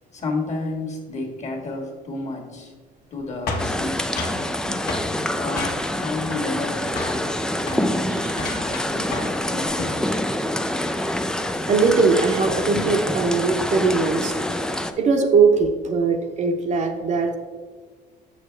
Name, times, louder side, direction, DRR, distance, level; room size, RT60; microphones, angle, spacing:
voice 1, 0.1-2.7 3.1-4.8 5.3-7.4 7.7-9.7 14.7-14.8, left 2 dB, 45° left, 2 dB, 1.7 m, -32 dB
sound 1, 3.5-4.4 4.9-5.1 5.6-6.0 6.3-6.7 7.0-7.2 7.6-7.8 8.3-9.4 9.7-10.0, left 3 dB, 70° left, 1.4 m, -31 dB
sound 2, 3.6-14.9, left 1 dB, 5° left, 0.4 m, -26 dB
voice 2, 11.7-14.4 15.0-17.3, right 4 dB, 45° right, 4 dB, 0.9 m, -20 dB
6.7 x 6.4 x 3.3 m, 1.5 s
cardioid pair, 110°, 17 cm